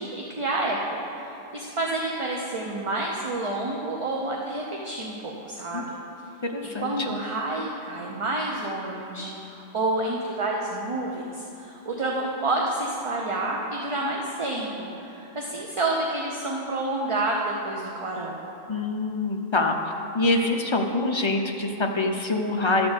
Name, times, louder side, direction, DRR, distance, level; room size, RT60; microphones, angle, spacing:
voice 1, 0.0-6.0 6.8-18.4, right 2 dB, 35° right, -1 dB, 0.6 m, -29 dB
voice 2, 6.4-7.2 18.7-19.8 20.1-22.9, left 2 dB, 40° left, 3 dB, 0.4 m, -25 dB
11.5 x 4.3 x 7.8 m, 2.9 s
omnidirectional pair, 1.1 m